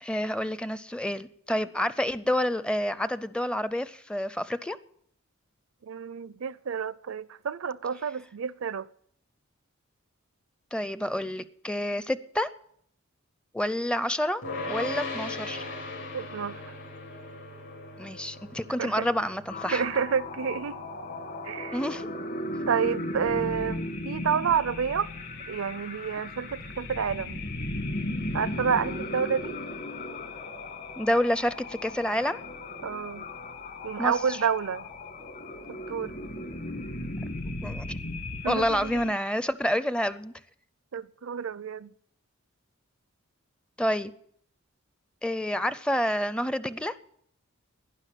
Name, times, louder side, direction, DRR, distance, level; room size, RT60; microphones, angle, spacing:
voice 1, 0.0-4.8 10.7-12.5 13.5-15.6 18.0-19.8 21.7-22.1 31.0-32.4 34.0-34.4 37.6-38.0 38.5-40.3 43.8-44.1 45.2-47.0, equal, 5° left, 0.5 m, -28 dB
voice 2, 5.8-8.9 16.1-16.7 18.8-19.1 19.7-20.8 21.4-21.8 22.7-25.1 25.5-27.4 28.3-29.6 32.8-33.3 33.8-34.9 35.7-36.1 38.4-39.1 40.9-41.9, right 6 dB, 70° right, 0.5 m, -29 dB
sound 1, 14.4-25.7, left 2 dB, 65° left, 4.8 m, -40 dB
sound 2, 19.5-39.1, left 1 dB, 45° left, 1.6 m, -36 dB
12.0 x 10.5 x 9.0 m
head